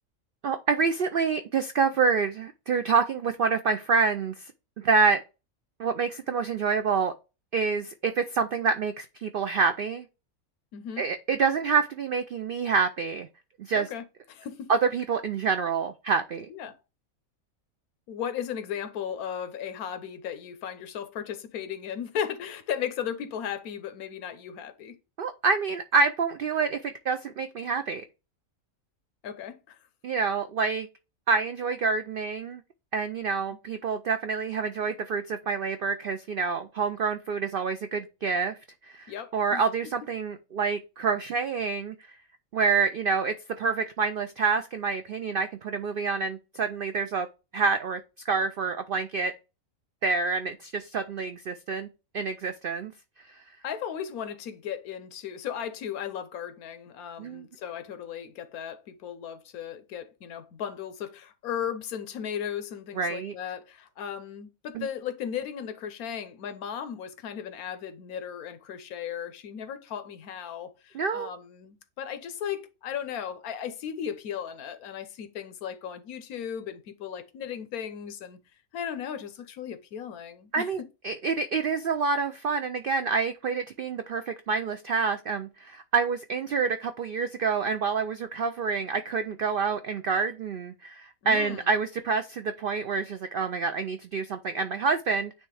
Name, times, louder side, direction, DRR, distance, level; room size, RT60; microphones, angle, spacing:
voice 1, 0.4-4.5 4.8-5.2 5.8-7.1 7.5-10.1 11.0-13.3 13.6-13.9 14.7-16.5 25.2-28.0 30.0-30.9 31.3-32.6 32.9-38.5 38.8-41.9 42.5-47.3 47.5-48.0 48.2-49.3 50.0-51.9 52.1-52.9 57.2-57.5 63.0-63.3 64.7-64.9 70.9-71.3 80.5-95.3, right 5 dB, 75° right, 0.5 m, -27 dB
voice 2, 10.7-11.1 13.7-14.0 14.3-14.7 16.5-16.8 18.1-25.0 29.2-29.8 39.1-39.6 53.6-78.4 78.7-80.7 91.2-91.7, left 8 dB, 90° left, 1.3 m, -36 dB
9.3 x 3.2 x 3.3 m
omnidirectional pair, 1.5 m